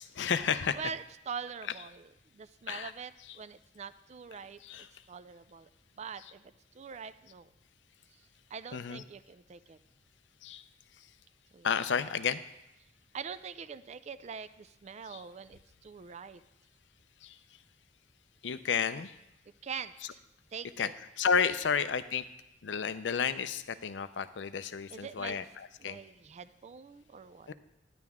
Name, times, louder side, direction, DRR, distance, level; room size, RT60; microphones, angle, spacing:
voice 1, 0.0-0.8 2.7-2.9 4.6-4.9 8.7-9.0 10.4-10.6 11.6-12.4 15.1-15.2 17.2-17.3 18.4-19.1 20.8-20.9 21.2-22.2 22.6-26.0 27.5-27.6, left 6 dB, 70° left, 13 dB, 0.5 m, -31 dB
voice 2, 0.8-4.6 5.1-5.7 6.0-7.5 8.5-9.8 11.5-11.7 13.1-16.4 19.6-20.2 20.5-20.9 24.9-25.4 25.8-27.5, right 6 dB, 35° right, 13 dB, 0.3 m, -44 dB
11.0 x 10.5 x 3.6 m, 0.86 s
head